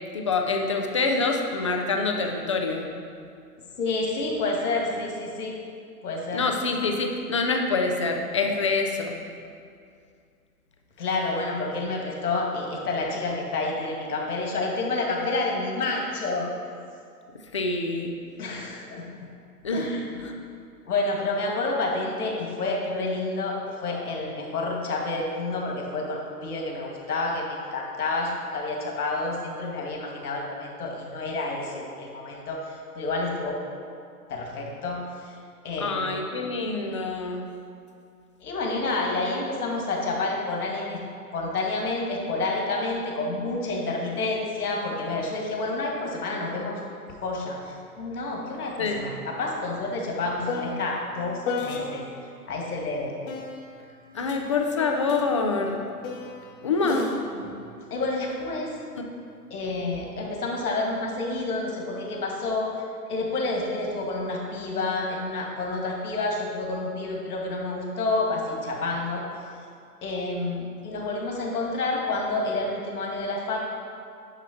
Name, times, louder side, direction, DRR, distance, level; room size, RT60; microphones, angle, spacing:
voice 1, 0.1-2.9 6.3-9.1 17.5-18.1 19.6-20.3 35.8-37.5 48.8-49.0 54.1-55.8 56.6-57.1, left 3 dB, 20° left, 3 dB, 0.3 m, -26 dB
voice 2, 3.8-5.5 6.0-6.5 11.0-16.5 18.4-19.0 19.7-20.0 20.8-33.6 34.3-35.0 35.6-36.1 38.4-41.0 41.3-46.8 47.2-52.0 52.5-53.2 54.2-54.3 56.8-57.0 57.3-57.6 57.9-58.7 59.5-62.7 63.1-69.2 70.0-73.6, left 2 dB, 70° left, -1 dB, 2.2 m, -29 dB
sound 1, 47.1-47.2 47.6-52.3 53.3-58.8 59.6-60.1, left 4 dB, 50° left, 1.3 m, -36 dB
10.0 x 5.9 x 4.4 m, 2.3 s
figure-of-eight pair, 115°, 48 cm